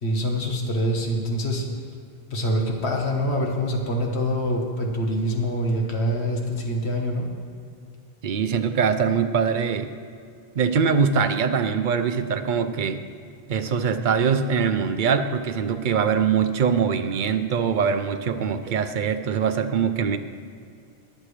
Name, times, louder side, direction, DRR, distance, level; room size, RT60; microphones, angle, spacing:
voice 1, 0.0-1.6 2.3-7.3, equal, 80° left, 1 dB, 1.7 m, -25 dB
voice 2, 8.2-9.9 10.6-13.0 13.5-20.2, right 6 dB, 55° right, 9 dB, 0.7 m, -23 dB
21.5 x 7.5 x 3.3 m, 2.3 s
omnidirectional pair, 1.1 m